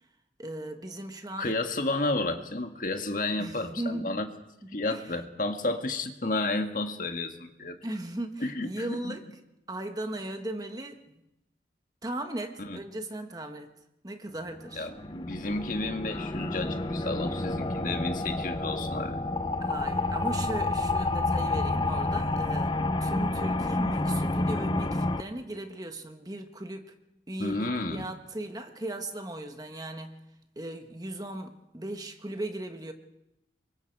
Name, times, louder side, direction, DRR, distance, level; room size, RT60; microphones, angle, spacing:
voice 1, 0.4-1.6 3.4-4.2 4.7-5.0 7.8-9.3 9.7-11.2 12.0-13.7 14.0-14.9 19.6-26.9 27.3-30.2 30.5-32.9, right 1 dB, 20° right, 6 dB, 1.4 m, -37 dB
voice 2, 1.4-4.2 4.7-7.8 8.4-9.2 12.6-12.8 14.8-19.2 27.4-28.1, left 2 dB, 50° left, 6 dB, 1.7 m, -31 dB
sound 1, 14.5-25.2, left 2 dB, 25° left, 0.7 m, -29 dB
26.5 x 23.0 x 4.7 m, 0.88 s
head